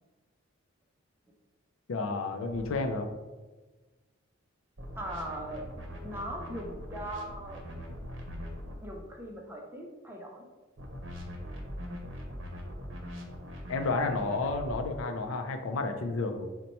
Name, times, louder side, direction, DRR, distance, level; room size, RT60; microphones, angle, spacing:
voice 1, 1.9-3.1 13.7-16.5, left 3 dB, 80° left, 5 dB, 0.4 m, -31 dB
sound 1, 2.5-2.7 4.8-8.8 10.8-14.8, equal, 65° right, 0.7 m, -42 dB
voice 2, 5.0-5.7 6.0-7.6 8.8-10.5, right 1 dB, 10° right, 1 dB, 0.4 m, -39 dB
4.1 x 2.2 x 4.1 m, 1.2 s
head